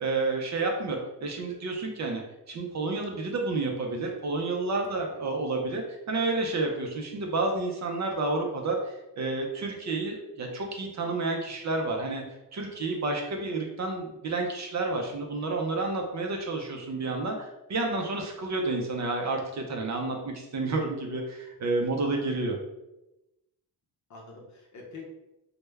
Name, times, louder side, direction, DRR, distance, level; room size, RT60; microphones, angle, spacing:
voice 1, 0.0-2.2 2.5-12.2 12.5-22.6, right 3 dB, 45° right, 1 dB, 0.4 m, -30 dB
voice 2, 4.9-5.2 14.9-15.3 21.9-22.0 24.1-25.0, left 4 dB, 45° left, 0 dB, 0.6 m, -47 dB
3.2 x 2.1 x 3.3 m, 0.96 s
wide cardioid pair, 160°, 42 cm